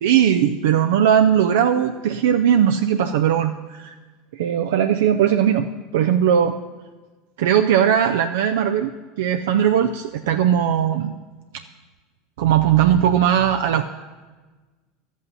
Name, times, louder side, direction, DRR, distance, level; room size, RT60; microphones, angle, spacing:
voice 1, 0.0-4.0 4.3-5.7 5.9-6.6 7.4-8.9 9.2-11.1 12.4-13.8, right 9 dB, 75° right, 7 dB, 0.4 m, -18 dB
12.0 x 8.2 x 5.4 m, 1.3 s
hypercardioid pair, 90°, 0 cm